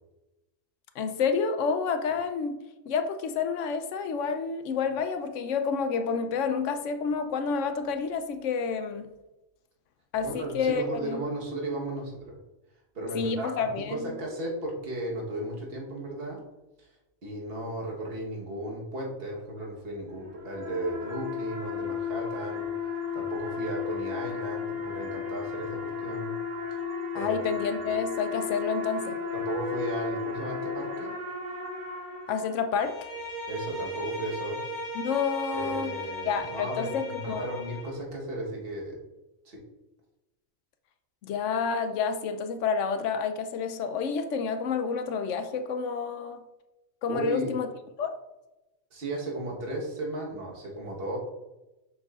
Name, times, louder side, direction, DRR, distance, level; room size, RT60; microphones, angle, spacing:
voice 1, 1.0-2.6 2.9-9.1 10.1-11.2 13.1-14.2 27.1-29.2 32.3-33.0 34.9-35.9 36.2-37.5 41.2-46.4 47.0-47.7 48.0-48.1, left 5 dB, 75° left, 8 dB, 0.9 m, -29 dB
voice 2, 10.2-12.3 12.9-16.4 16.8-16.9 17.2-22.7 23.1-26.3 26.7-26.8 27.1-27.3 27.7-27.8 29.3-31.2 33.5-34.6 35.5-39.0 39.4-39.6 47.1-47.5 48.9-51.2, right 1 dB, 50° right, -2 dB, 1.4 m, -35 dB
sound 1, 20.1-32.9, left 5 dB, 80° right, 1.6 m, -34 dB
Bowed string instrument, 32.8-38.0, equal, 15° left, 1.6 m, -37 dB
6.4 x 6.1 x 2.4 m, 1.0 s
omnidirectional pair, 1.3 m